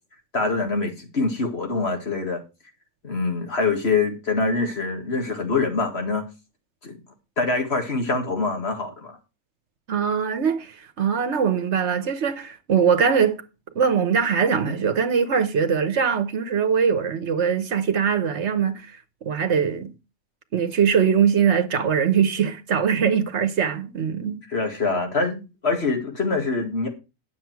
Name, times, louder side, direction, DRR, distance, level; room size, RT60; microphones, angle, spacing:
voice 1, 0.3-2.4 3.0-6.2 6.8-7.0 7.4-9.2 24.5-26.9, left 3 dB, 55° left, 2.2 m, -24 dB
voice 2, 9.9-13.4 13.7-18.9 19.2-19.9 20.5-24.4, right 7 dB, 65° right, 1.3 m, -22 dB
10.0 x 7.1 x 4.6 m
omnidirectional pair, 1.3 m